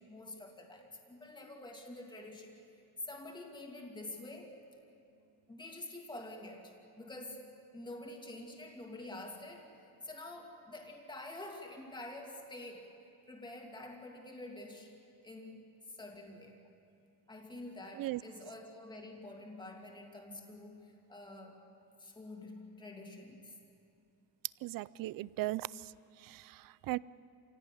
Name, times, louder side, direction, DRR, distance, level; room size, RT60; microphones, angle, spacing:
voice 1, 0.0-2.6 3.0-4.6 5.5-7.4 7.7-12.9 13.3-14.9 15.2-16.6 17.3-21.6 22.0-23.6, left 2 dB, 10° left, 2 dB, 2.4 m, -48 dB
voice 2, 24.6-25.7 26.2-27.0, right 17 dB, 55° right, 20 dB, 0.5 m, -37 dB
27.0 x 17.0 x 9.9 m, 2.6 s
cardioid pair, 175°, 41 cm